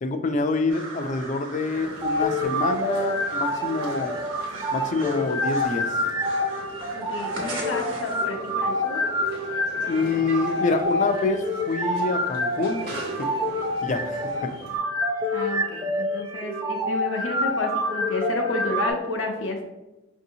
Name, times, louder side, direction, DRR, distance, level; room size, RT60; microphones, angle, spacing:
voice 1, 0.0-4.1 4.7-5.9 9.9-12.9 13.2-13.3 13.8-14.5 15.2-15.3, left 3 dB, 40° left, 7 dB, 0.4 m, -26 dB
sound 1, 0.7-8.3, right 2 dB, 85° right, 1.0 m, -39 dB
sound 2, 1.7-14.8, right 1 dB, 55° right, 0.9 m, -41 dB
sound 3, 2.0-18.9, left 1 dB, 25° right, 0.5 m, -27 dB
voice 2, 6.9-9.1 15.3-19.6, left 2 dB, 85° left, 2 dB, 0.7 m, -31 dB
5.3 x 2.7 x 2.7 m, 1.0 s
head